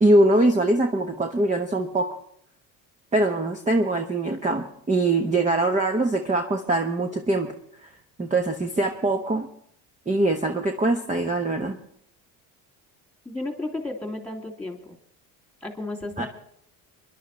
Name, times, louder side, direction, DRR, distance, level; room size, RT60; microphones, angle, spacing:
voice 1, 0.0-2.1 3.1-7.5 8.2-9.5 10.1-11.7 16.2-16.3, right 2 dB, 20° right, 4 dB, 1.2 m, -22 dB
voice 2, 13.2-14.9 15.6-16.3, left 2 dB, 5° left, 3 dB, 2.9 m, -33 dB
23.5 x 11.5 x 3.3 m, 0.65 s
supercardioid pair, 95°, 40 cm